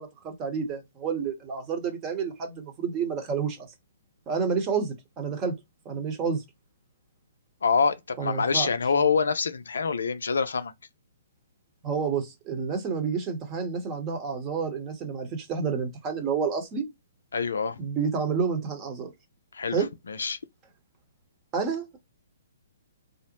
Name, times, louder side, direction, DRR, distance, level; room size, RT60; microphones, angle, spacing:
voice 1, 0.0-3.6 4.3-5.6 5.8-6.4 8.2-8.7 11.8-16.9 17.8-19.1 19.7-19.9 21.5-21.8, right 6 dB, 25° right, 0.9 m, -29 dB
voice 2, 7.6-10.7 17.3-17.8 19.5-20.4, left 5 dB, 75° left, 0.4 m, -26 dB
2.4 x 2.0 x 2.9 m
figure-of-eight pair, 130°, 0 cm